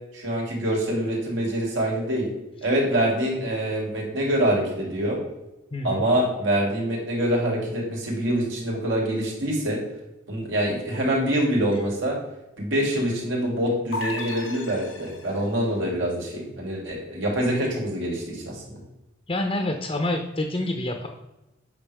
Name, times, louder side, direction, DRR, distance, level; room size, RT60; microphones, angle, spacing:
voice 1, 0.1-2.3 2.6-5.2 5.8-9.8 10.3-12.2 12.6-18.8, right 1 dB, 75° right, -2 dB, 2.9 m, -25 dB
voice 2, 5.7-6.0 19.3-21.1, left 1 dB, 30° left, 4 dB, 0.7 m, -27 dB
sound 1, 13.9-15.5, left 2 dB, 80° left, 1.0 m, -34 dB
8.6 x 5.8 x 3.5 m, 0.95 s
head